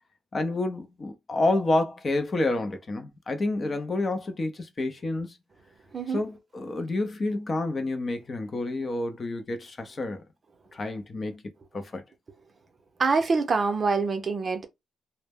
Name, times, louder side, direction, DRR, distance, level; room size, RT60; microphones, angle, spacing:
voice 1, 0.3-5.4 6.1-10.2 10.7-11.4 11.7-12.0, left 2 dB, 35° left, 0.5 m, -29 dB
voice 2, 13.0-14.7, right 4 dB, 35° right, 0.6 m, -25 dB
2.1 x 2.0 x 3.4 m
cardioid pair, 90°, 0 cm